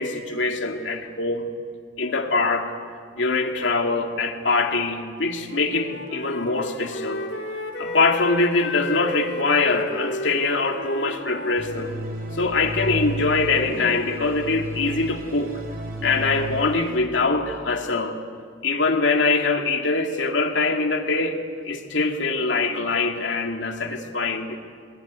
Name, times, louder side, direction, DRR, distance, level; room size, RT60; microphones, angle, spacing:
voice 1, 0.0-1.5 2.0-2.7 3.2-7.2 7.8-11.9 12.3-15.5 16.0-18.2 18.6-21.4 21.6-24.6, left 3 dB, 75° left, 4 dB, 2.4 m, -23 dB
Wind instrument woodwind instrument, 5.3-12.1, left 2 dB, 60° left, 3.7 m, -34 dB
sound 1, 11.6-17.0, equal, 50° right, 4.4 m, -33 dB
23.0 x 20.5 x 9.6 m, 2.1 s
head